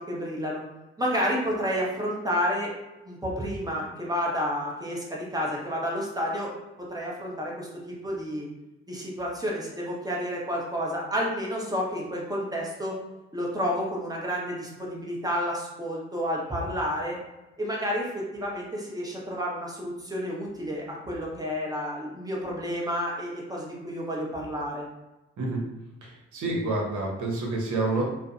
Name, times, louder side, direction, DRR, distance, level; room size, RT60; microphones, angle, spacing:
voice 1, 0.1-0.6 1.0-2.7 3.0-6.5 6.9-7.7 8.0-8.5 8.9-12.9 13.3-17.2 17.6-24.9, equal, 10° right, -3 dB, 0.9 m, -30 dB
voice 2, 26.0-28.1, right 2 dB, 60° right, -2 dB, 0.9 m, -28 dB
2.5 x 2.0 x 2.5 m, 1.0 s
hypercardioid pair, 40°, 33 cm